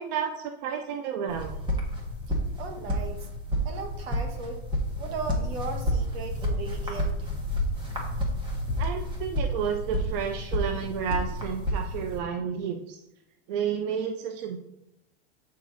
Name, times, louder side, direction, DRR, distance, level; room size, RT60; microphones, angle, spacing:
voice 1, 0.0-1.5 8.8-13.0 13.5-14.6, right 7 dB, 45° right, 5 dB, 0.6 m, -31 dB
sound 1, 1.3-12.2, equal, 15° right, 1.3 m, -30 dB
voice 2, 2.6-3.3 3.6-4.6 5.0-7.3, right 4 dB, 70° right, 5 dB, 1.7 m, -37 dB
8.0 x 4.7 x 4.0 m, 0.90 s
supercardioid pair, 150°, 31 cm